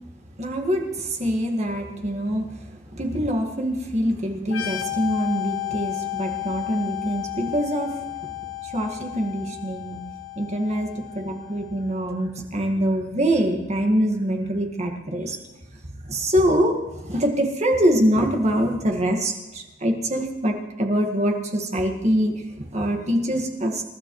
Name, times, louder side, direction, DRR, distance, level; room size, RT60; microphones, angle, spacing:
voice 1, 0.4-2.6 2.9-8.0 8.6-10.0 10.4-15.4 16.0-23.8, equal, 35° right, 2 dB, 1.9 m, -24 dB
sound 1, 4.4-12.0, left 18 dB, 85° left, 1.2 m, -33 dB
27.0 x 12.5 x 3.2 m, 1.0 s
head